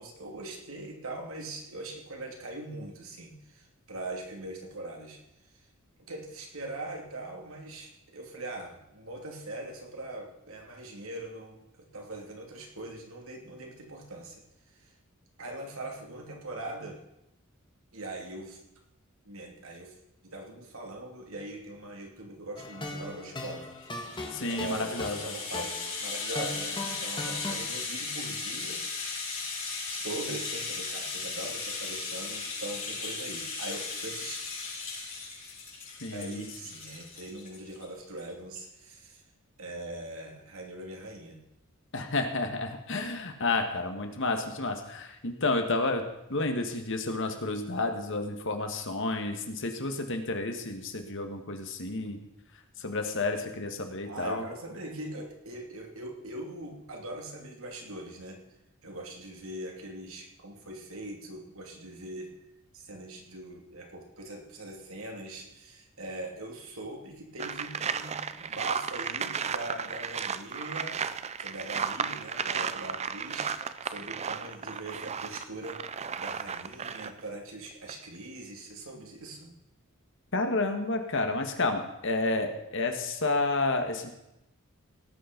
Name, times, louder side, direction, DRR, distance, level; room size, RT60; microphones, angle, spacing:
voice 1, 0.0-5.2 6.0-14.4 14.8-14.9 15.4-17.0 17.9-18.6 19.2-20.0 20.2-23.7 24.5-24.9 25.2-28.8 29.1-29.3 29.9-34.4 36.1-39.2 39.6-41.4 54.0-58.4 58.8-62.3 62.7-71.0 71.4-75.8 76.2-79.5, right 2 dB, 75° right, 1 dB, 2.8 m, -41 dB
sound 1, 22.6-27.5, left 2 dB, 25° left, 1.8 m, -39 dB
Rattle (instrument), 23.7-37.8 38.2-38.3 38.5-38.7, left 4 dB, 40° left, 6.8 m, -37 dB
voice 2, 24.3-25.3 36.0-36.5 41.9-46.0 46.3-52.2 52.8-54.5 80.3-84.1, left 2 dB, 65° left, 5 dB, 1.8 m, -30 dB
sound 2, 67.4-77.3 77.7-77.9, right 6 dB, 30° right, 0.5 m, -34 dB
17.5 x 8.9 x 5.3 m, 0.87 s
head